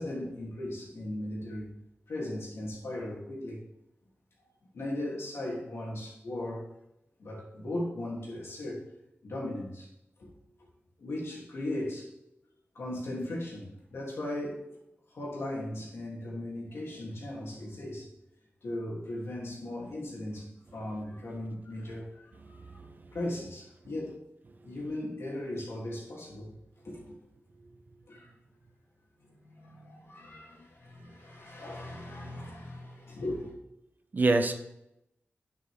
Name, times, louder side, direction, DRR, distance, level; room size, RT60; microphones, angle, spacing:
voice 1, 0.0-1.7 2.1-3.6 4.7-6.6 7.2-8.9 9.2-9.9 10.2-10.3 11.0-12.1 12.7-14.7 15.1-18.1 18.6-22.8 23.1-24.2 24.6-26.5 26.8-27.1 28.1-28.3 29.2-33.5, left 1 dB, 75° left, 3.1 m, -37 dB
voice 2, 22.6-23.1 34.1-34.5, right 2 dB, 45° right, 0.9 m, -27 dB
10.0 x 6.1 x 3.7 m
wide cardioid pair, 110°, 4 cm